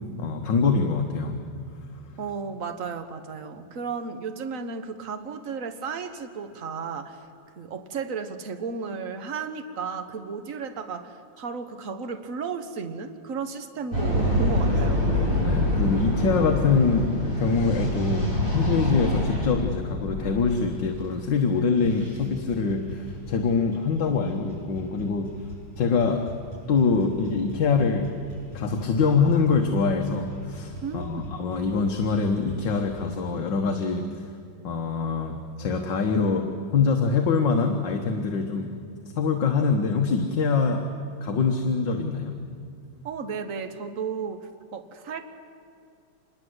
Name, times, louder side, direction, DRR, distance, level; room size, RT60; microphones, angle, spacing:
voice 1, 0.2-1.4 15.4-25.3 25.8-26.3 26.7-28.1 28.5-34.2 34.6-38.7 39.2-40.9 41.2-42.4, left 4 dB, 60° left, 3 dB, 1.9 m, -24 dB
voice 2, 2.2-7.2 7.5-15.1 30.8-31.3 43.0-45.3, right 5 dB, 40° right, 8 dB, 1.6 m, -34 dB
sound 1, 13.9-20.6, left 1 dB, 25° right, 5.9 m, -25 dB
sound 2, 20.9-21.4 21.7-33.0, equal, 70° right, 8.2 m, -42 dB
26.0 x 21.5 x 8.0 m, 2.4 s
omnidirectional pair, 2.4 m